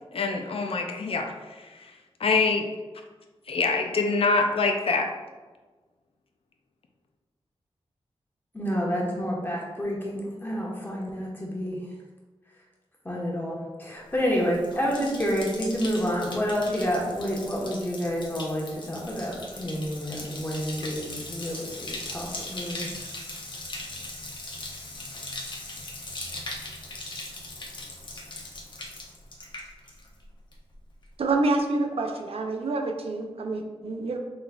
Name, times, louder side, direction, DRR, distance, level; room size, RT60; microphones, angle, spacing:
voice 1, 0.1-1.9 2.2-2.6 3.5-5.1, left 4 dB, 65° left, 4 dB, 0.4 m, -25 dB
voice 2, 8.5-11.8 13.0-22.9, equal, 20° left, -3 dB, 1.2 m, -29 dB
Bathtub (filling or washing), 14.1-30.2 30.5-31.0, left 2 dB, 50° left, 0.8 m, -39 dB
voice 3, 31.2-34.2, right 3 dB, 65° right, 4 dB, 0.5 m, -27 dB
5.8 x 3.2 x 2.4 m, 1.3 s
wide cardioid pair, 90°, 11 cm